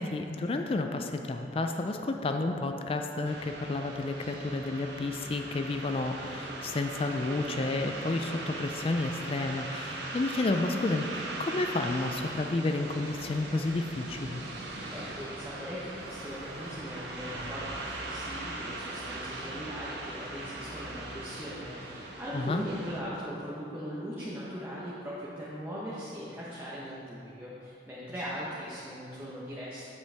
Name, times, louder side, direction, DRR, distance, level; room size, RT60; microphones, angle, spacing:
voice 1, 0.0-14.4 22.3-22.6, left 2 dB, 30° left, 5 dB, 0.3 m, -31 dB
sound 1, 3.2-23.0, right 2 dB, 80° right, 1.0 m, -40 dB
voice 2, 14.5-29.9, equal, 15° right, -8 dB, 1.0 m, -40 dB
8.2 x 7.5 x 3.4 m, 2.9 s
head